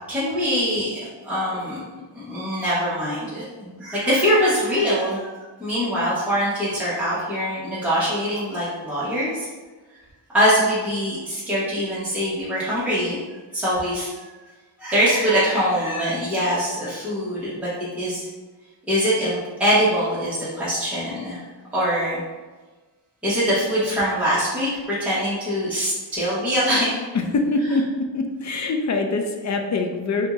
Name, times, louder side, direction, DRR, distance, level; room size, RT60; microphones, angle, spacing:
voice 1, 0.1-1.0 1.2-5.3 5.6-9.5 10.3-13.2 13.5-14.4 14.8-17.7 17.9-18.3 18.9-21.4 21.7-22.2 23.2-26.9, equal, 5° right, -10 dB, 0.9 m, -23 dB
voice 2, 27.3-27.8 28.1-30.3, left 3 dB, 40° left, 4 dB, 0.4 m, -23 dB
2.6 x 2.3 x 2.9 m, 1.3 s
wide cardioid pair, 70°, 45 cm